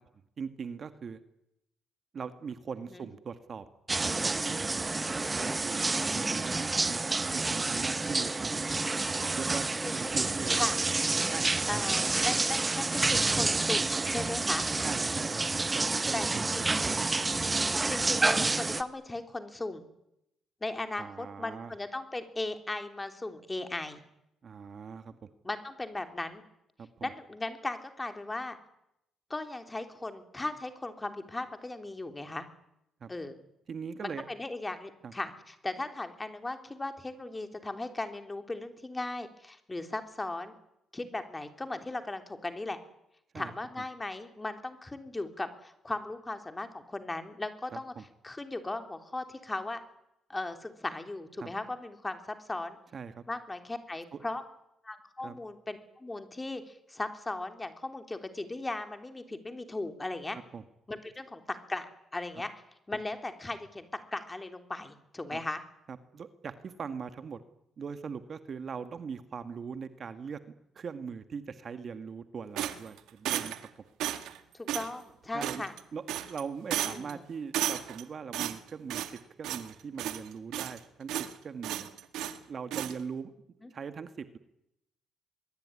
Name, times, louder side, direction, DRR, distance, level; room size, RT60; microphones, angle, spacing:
voice 1, 0.4-1.2 2.1-3.6 4.0-5.1 5.4-5.9 6.1-7.0 7.3-8.6 9.3-9.7 9.9-10.6 11.3-11.5 14.8-16.9 17.3-17.4 21.0-21.7 24.4-25.3 26.8-27.1 33.0-33.1 33.7-34.2 35.0-35.1 43.3-43.5 47.7-48.0 51.4-51.5 52.9-53.2 54.1-54.2 55.2-55.4 60.3-60.6 65.3-65.4 65.9-67.4 67.8-70.4 70.7-73.6 75.3-75.6 75.9-81.9 82.5-83.3 83.7-84.4, right 6 dB, 40° right, 10 dB, 1.7 m, -41 dB
sound 1, 3.9-18.8, right 3 dB, 20° right, 1.3 m, -29 dB
voice 2, 11.7-14.7 16.1-16.8 17.6-19.9 20.6-24.0 25.4-26.4 27.0-28.6 29.3-32.4 33.1-33.4 34.0-40.5 40.9-42.8 43.3-47.9 48.2-49.8 50.3-52.8 53.3-54.4 54.8-60.4 60.9-62.5 62.9-65.6 74.5-75.7 76.8-77.2 83.6-83.7, left 2 dB, 15° left, 7 dB, 3.4 m, -37 dB
sound 2, 72.6-73.7 74.0-74.4 74.7-74.9 75.4-75.8 76.1-76.4 76.7-77.1 77.5-78.0 78.3-79.2 79.4-79.7 80.0-80.8 81.1-81.3 81.6-82.4 82.7-82.9, right 12 dB, 85° right, 1.9 m, -33 dB
23.5 x 23.0 x 9.9 m, 0.81 s
cardioid pair, 110°, 0 cm